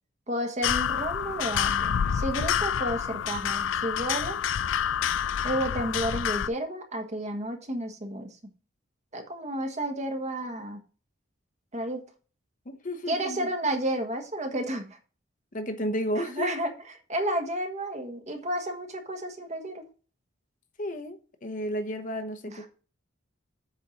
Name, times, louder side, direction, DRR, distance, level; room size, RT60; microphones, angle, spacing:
voice 1, 0.3-4.4 5.4-8.3 9.1-10.8 11.7-12.0 13.1-15.0 16.2-16.7 17.1-19.8 22.5-22.7, right 1 dB, 35° right, 4 dB, 1.5 m, -31 dB
sound 1, 0.6-6.5, left 8 dB, 70° left, 0.4 m, -28 dB
voice 2, 12.6-13.5 15.5-16.6 20.8-22.7, equal, 45° left, 7 dB, 1.0 m, -32 dB
8.2 x 4.4 x 6.3 m, 0.38 s
head